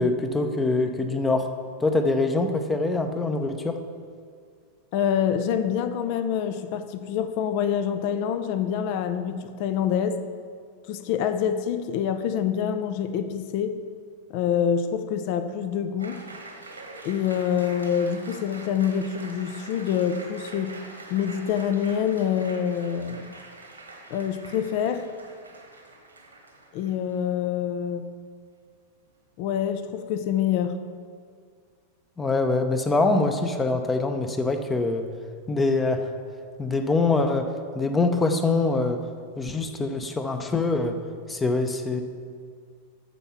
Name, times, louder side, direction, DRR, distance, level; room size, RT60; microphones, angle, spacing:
voice 1, 0.0-1.5 1.8-3.8 32.2-35.0 35.5-36.1 36.6-39.0 39.4-41.0 41.3-42.0, left 3 dB, 15° left, 7 dB, 0.8 m, -24 dB
voice 2, 4.9-10.2 10.9-13.8 14.3-16.2 17.0-20.8 21.1-23.3 24.1-25.1 26.7-28.1 29.4-30.8, left 8 dB, 45° left, 11 dB, 0.6 m, -26 dB
Applause, 16.0-27.3, right 2 dB, 80° right, 1.4 m, -44 dB
13.5 x 4.6 x 5.7 m, 2.1 s
figure-of-eight pair, 90°, 0 cm